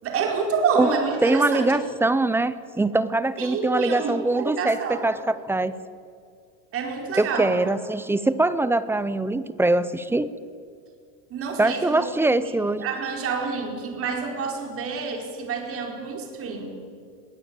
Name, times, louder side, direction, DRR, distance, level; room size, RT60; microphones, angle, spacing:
voice 1, 0.0-1.8 3.4-5.1 6.7-7.5 11.3-12.1 12.4-12.5 12.8-16.7, right 5 dB, 35° right, 2 dB, 4.7 m, -28 dB
voice 2, 1.2-5.7 7.2-10.3 11.6-12.8, right 2 dB, 5° right, 15 dB, 0.5 m, -23 dB
21.5 x 17.0 x 9.0 m, 2.3 s
supercardioid pair, 145°, 39 cm